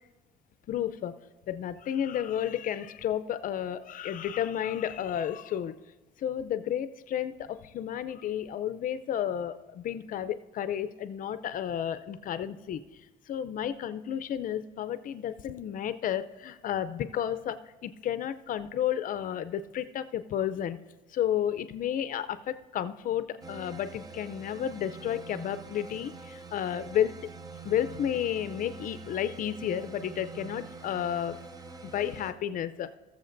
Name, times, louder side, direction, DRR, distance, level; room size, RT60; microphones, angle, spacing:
voice 1, 0.7-1.2 1.5-5.8 6.2-20.8 21.1-27.3 27.6-31.5 31.8-32.9, left 10 dB, 55° left, 13 dB, 0.5 m, -32 dB
sound 1, 23.4-32.3, right 4 dB, 20° right, 0.7 m, -45 dB
19.0 x 7.1 x 2.6 m, 1.2 s
cardioid pair, 110°, 17 cm